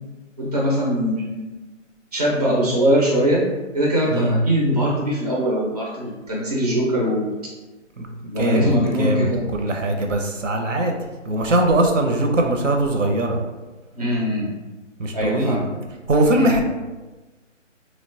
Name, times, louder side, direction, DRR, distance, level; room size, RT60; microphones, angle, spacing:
voice 1, 0.4-1.6 2.1-3.5 3.7-7.3 8.3-9.4 13.9-14.5 15.1-15.7 16.4-16.6, equal, 35° right, -5 dB, 0.4 m, -21 dB
voice 2, 8.0-11.0 11.3-13.4 15.0-15.7 16.1-16.6, right 1 dB, 75° right, 3 dB, 0.6 m, -21 dB
2.9 x 2.1 x 2.7 m, 1.2 s
figure-of-eight pair, 160°, 38 cm